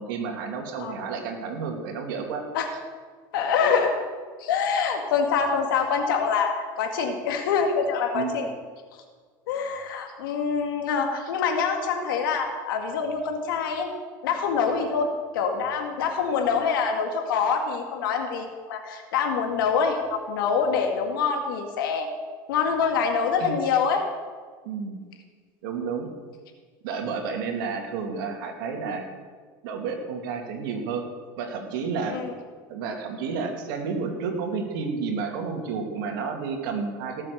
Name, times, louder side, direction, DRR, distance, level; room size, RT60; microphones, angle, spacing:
voice 1, 0.0-2.4 3.8-3.9 8.1-8.3 23.4-23.6 24.6-25.0 25.6-26.1 26.8-29.1 29.6-31.0 31.4-32.2 32.7-37.2, right 5 dB, 80° right, 2 dB, 2.7 m, -31 dB
voice 2, 3.3-3.9 4.4-8.5 9.5-13.9 14.2-15.1 15.3-22.1 22.5-24.0 32.1-32.3, left 6 dB, 90° left, 3 dB, 2.1 m, -25 dB
18.0 x 7.6 x 6.7 m, 1.5 s
supercardioid pair, 115°, 11 cm